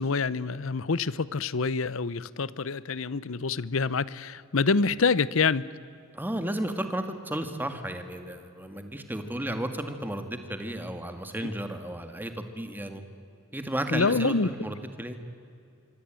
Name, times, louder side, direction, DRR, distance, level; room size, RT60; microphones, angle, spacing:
voice 1, 0.0-5.6 13.9-14.5, left 4 dB, 75° left, 19 dB, 0.7 m, -26 dB
voice 2, 6.1-13.0 13.5-15.2, right 1 dB, 10° right, 7 dB, 2.0 m, -33 dB
25.0 x 25.0 x 9.0 m, 2.5 s
head